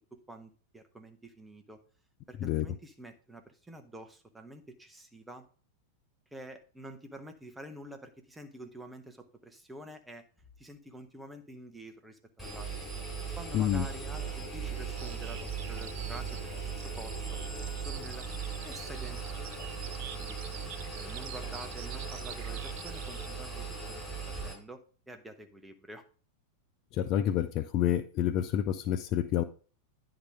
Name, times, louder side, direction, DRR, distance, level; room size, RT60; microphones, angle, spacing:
voice 1, 0.1-1.8 2.3-5.5 6.3-10.3 10.6-12.7 13.4-17.4 17.8-18.3 18.6-19.2 19.6-20.4 20.9-26.0, right 1 dB, 5° right, 1.1 m, -48 dB
Engine, 12.4-24.5, right 5 dB, 10° left, 4.8 m, -38 dB
voice 2, 13.5-13.9 26.9-29.4, left 11 dB, 40° left, 0.5 m, -28 dB
Bird vocalization bird call bird song, 15.0-23.3, right 11 dB, 50° right, 0.6 m, -47 dB
10.0 x 3.9 x 4.8 m
figure-of-eight pair, 90°, 0 cm